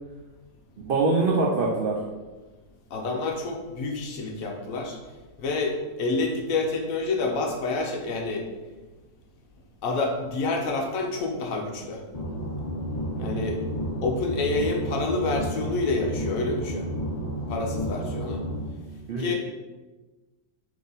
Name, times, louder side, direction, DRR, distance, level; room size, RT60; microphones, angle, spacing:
voice 1, 0.9-2.0 13.2-13.5 19.1-19.4, right 3 dB, 80° right, -3 dB, 0.5 m, -24 dB
voice 2, 2.9-5.0 5.4-8.5 9.8-12.0 13.2-13.6 14.0-16.9 17.5-18.4 19.2-19.4, left 3 dB, 70° left, 1 dB, 1.0 m, -28 dB
sound 1, 12.1-18.6, equal, 35° left, 0.7 m, -31 dB
3.6 x 3.0 x 3.9 m, 1.2 s
omnidirectional pair, 1.6 m